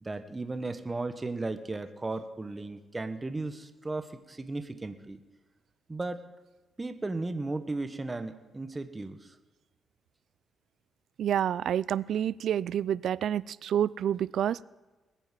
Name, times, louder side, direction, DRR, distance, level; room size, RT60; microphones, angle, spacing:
voice 1, 0.0-5.2 5.9-6.3 6.8-9.3, right 2 dB, 20° right, 8 dB, 1.4 m, -35 dB
voice 2, 11.2-14.6, right 10 dB, 70° right, 20 dB, 0.4 m, -28 dB
20.5 x 9.0 x 7.5 m, 1.2 s
cardioid pair, 100°, 0 cm